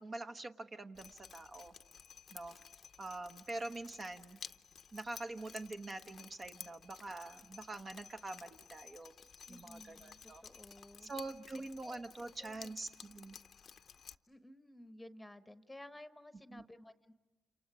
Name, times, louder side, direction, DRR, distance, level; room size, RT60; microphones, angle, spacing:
voice 1, 0.0-1.7 2.3-2.6 3.0-4.4 4.9-9.1 9.5-10.4 11.0-13.4 16.5-16.6, right 2 dB, 35° right, 6 dB, 1.0 m, -45 dB
Drip, 0.9-14.1, left 7 dB, 50° left, 0.7 m, -55 dB
voice 2, 9.5-11.1 11.8-12.0 12.4-12.7 14.3-17.1, left 1 dB, 10° left, 10 dB, 1.1 m, -55 dB
29.0 x 27.5 x 4.9 m, 1.1 s
cardioid pair, 90°, 0 cm